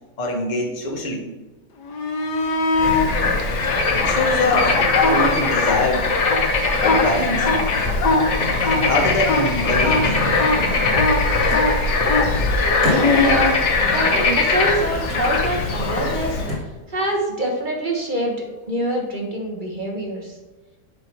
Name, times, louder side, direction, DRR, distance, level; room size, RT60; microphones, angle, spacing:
voice 1, 0.2-1.3 3.9-6.1 6.8-7.5 8.8-10.1, left 2 dB, 30° left, 0 dB, 1.2 m, -23 dB
sound 1, 1.8-3.1 3.7-5.8 6.1-14.3 17.0-17.2, left 3 dB, 80° left, 1.6 m, -22 dB
sound 2, 2.3-2.7 3.5-4.3 5.0-5.2 5.6-5.8 6.3-6.7 6.9-7.6 8.7-9.4 9.7-10.5 11.5-12.3 12.8-13.5 14.0-14.7 15.1-15.3 15.9-16.0 16.4-16.9, left 1 dB, 65° right, 1.8 m, -33 dB
Bird / Frog, 2.8-16.5, left 3 dB, 50° left, 1.1 m, -21 dB
voice 2, 12.9-13.5 13.9-16.4 16.9-20.3, right 1 dB, 30° right, -1 dB, 1.2 m, -25 dB
7.9 x 4.8 x 4.6 m, 1.2 s
omnidirectional pair, 1.8 m